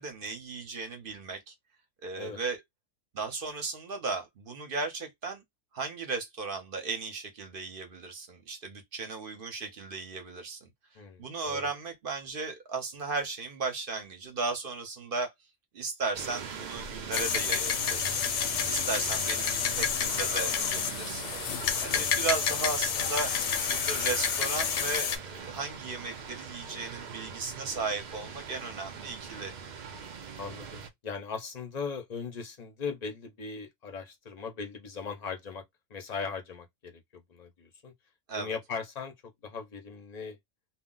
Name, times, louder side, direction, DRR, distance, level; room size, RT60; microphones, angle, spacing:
voice 1, 0.0-1.5 2.0-2.6 3.1-5.4 5.7-10.7 11.2-15.3 15.7-18.3 18.6-21.3 21.8-23.3 23.7-29.5 38.3-38.6, right 4 dB, 50° right, 0.8 m, -36 dB
voice 2, 11.0-11.7 21.9-22.2 30.4-35.6 35.9-37.9 38.3-39.1 39.4-40.4, left 5 dB, 40° left, 0.6 m, -39 dB
sound 1, 16.1-30.9, right 6 dB, 70° right, 0.4 m, -41 dB
sound 2, 17.1-25.2, left 7 dB, 70° left, 0.8 m, -29 dB
2.3 x 2.1 x 3.7 m
omnidirectional pair, 1.4 m